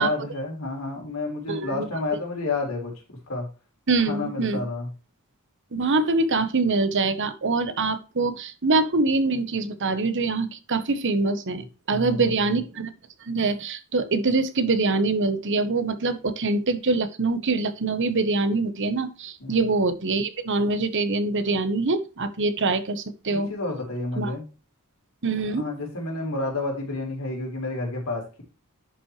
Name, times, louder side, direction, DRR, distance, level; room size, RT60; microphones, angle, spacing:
voice 1, 0.0-2.9 3.3-3.5 4.1-4.9 11.9-12.2 19.4-19.6 23.3-24.4 25.5-28.4, left 2 dB, 75° left, 0 dB, 4.1 m, -30 dB
voice 2, 1.5-1.9 3.9-4.6 5.7-12.9 13.2-23.5 24.2-24.3 25.2-25.6, right 3 dB, 55° right, 11 dB, 1.0 m, -24 dB
10.5 x 5.8 x 3.1 m, 0.33 s
head